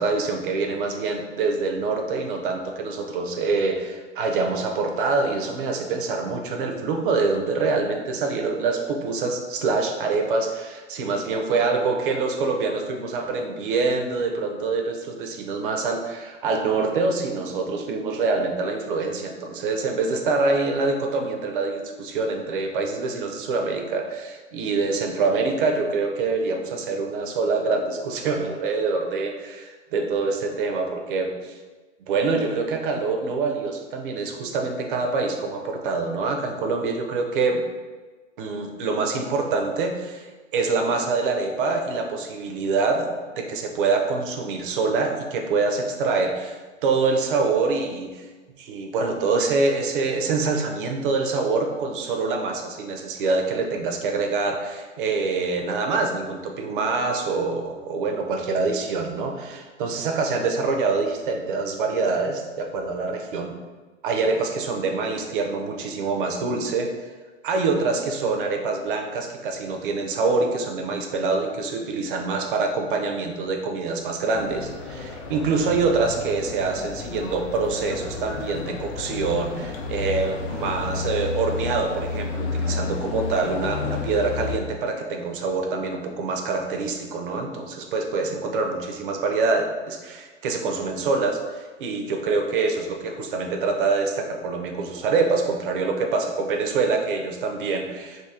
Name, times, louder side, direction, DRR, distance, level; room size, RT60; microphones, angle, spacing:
voice 1, 0.0-31.6 32.1-37.6 38.4-43.1 43.4-48.3 48.6-63.5 64.0-66.9 67.4-98.2, right 4 dB, 45° right, 3 dB, 0.6 m, -25 dB
sound 1, 74.3-84.6, left 4 dB, 60° left, 0.7 m, -31 dB
2.8 x 2.7 x 3.6 m, 1.3 s
hypercardioid pair, 135°, 36 cm